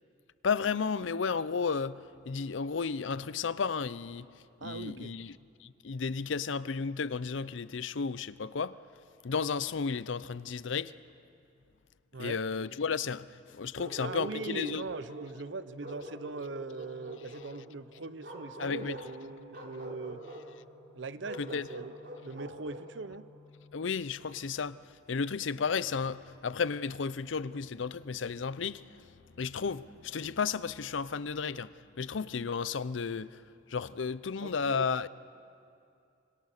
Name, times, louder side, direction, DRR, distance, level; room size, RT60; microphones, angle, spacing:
voice 1, 0.4-4.3 4.6-5.3 5.6-8.8 9.2-10.9 12.2-14.8 18.6-19.0 21.4-21.7 23.7-24.8 25.1-29.0 29.4-31.7 32.0-33.4 33.7-35.1, left 5 dB, 80° left, 0.6 m, -33 dB
voice 2, 4.6-5.2 12.1-12.4 14.0-20.2 20.9-21.9 22.2-23.3 34.4-34.9, right 3 dB, 70° right, 0.7 m, -40 dB
Bark, 13.7-15.4 15.8-17.5 18.2-19.2 19.5-20.5 21.2-22.9, right 1 dB, 55° right, 3.5 m, -44 dB
sound 1, 14.4-24.4, left 2 dB, 20° left, 1.9 m, -57 dB
25.5 x 24.5 x 6.6 m
head